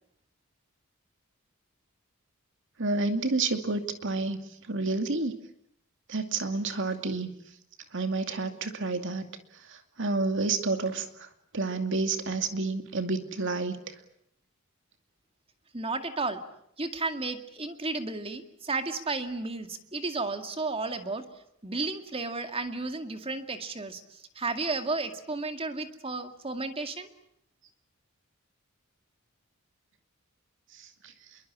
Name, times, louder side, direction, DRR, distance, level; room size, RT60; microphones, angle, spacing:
voice 1, 2.8-5.4 6.1-7.3 7.9-9.2 9.7-13.8 30.8-31.1, right 3 dB, 60° right, 7 dB, 2.4 m, -30 dB
voice 2, 15.7-16.4 16.8-21.2 21.6-24.0 24.4-27.1, right 3 dB, 25° right, 7 dB, 2.2 m, -33 dB
27.5 x 22.5 x 8.7 m, 0.74 s
head